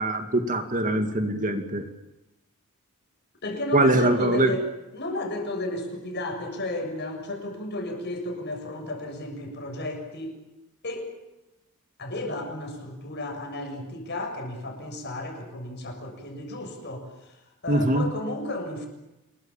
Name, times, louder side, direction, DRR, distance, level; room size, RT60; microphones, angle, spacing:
voice 1, 0.0-1.9 3.7-4.5 17.7-18.1, right 1 dB, 35° right, 7 dB, 2.3 m, -23 dB
voice 2, 3.4-10.3 10.8-11.1 12.0-17.3 17.6-18.9, left 1 dB, 50° left, 3 dB, 7.3 m, -33 dB
27.5 x 22.5 x 7.3 m, 0.97 s
head